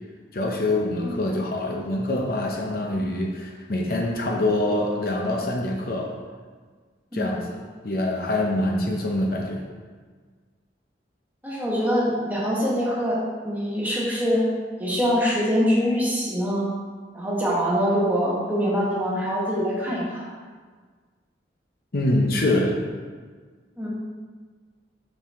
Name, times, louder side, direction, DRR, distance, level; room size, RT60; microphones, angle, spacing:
voice 1, 0.3-6.1 7.1-7.6 7.8-9.6 21.9-22.8, left 1 dB, 55° left, 0 dB, 0.7 m, -25 dB
voice 2, 11.4-14.4 14.8-16.7 17.1-20.3 23.8-23.9, equal, 10° right, -6 dB, 1.6 m, -24 dB
7.0 x 5.6 x 3.6 m, 1.5 s
head